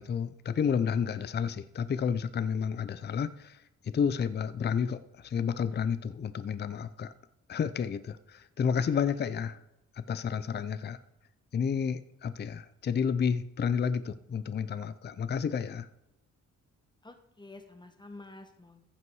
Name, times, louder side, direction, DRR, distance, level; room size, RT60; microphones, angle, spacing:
voice 1, 0.0-7.1 7.5-9.6 9.9-11.0 11.5-15.9, left 7 dB, 35° left, 13 dB, 0.5 m, -31 dB
voice 2, 17.0-18.8, left 2 dB, 15° left, 6 dB, 1.3 m, -49 dB
15.0 x 5.7 x 4.7 m, 0.90 s
cardioid pair, 100°, 29 cm